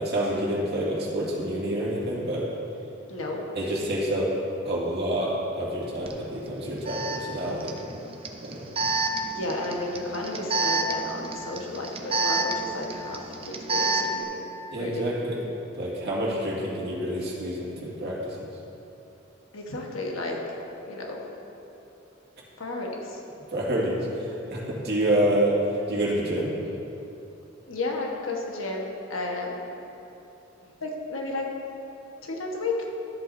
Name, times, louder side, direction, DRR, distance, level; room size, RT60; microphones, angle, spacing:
voice 1, 0.0-2.5 3.5-4.3 4.7-7.8 8.4-8.7 14.7-15.4 15.7-18.5 23.5-25.6 25.9-26.5, right 1 dB, 55° right, -5 dB, 2.0 m, -28 dB
voice 2, 3.1-3.4 7.5-7.6 9.3-13.2 13.5-14.4 14.8-15.1 19.5-20.4 20.8-21.2 22.6-23.2 27.7-29.6 30.8-31.5 32.4-32.7, left 2 dB, 90° left, -1 dB, 1.3 m, -32 dB
Alarm, 6.1-6.2 6.9-14.2, right 3 dB, 30° right, 0.6 m, -29 dB
13.5 x 8.0 x 2.7 m, 3.0 s
head